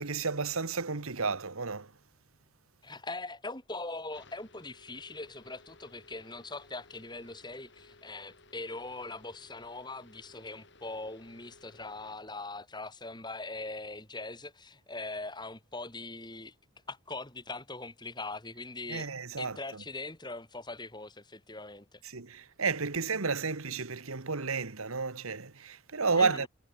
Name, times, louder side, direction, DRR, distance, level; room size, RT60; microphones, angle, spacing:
voice 1, 0.0-1.9 18.9-19.8 22.0-26.5, right 4 dB, 80° right, 1.5 m, -32 dB
voice 2, 2.8-16.5 16.9-19.1 19.4-22.0 26.2-26.5, left 2 dB, 20° left, 4.0 m, -41 dB
sound 1, 4.1-12.2, left 2 dB, 55° left, 6.0 m, -59 dB
head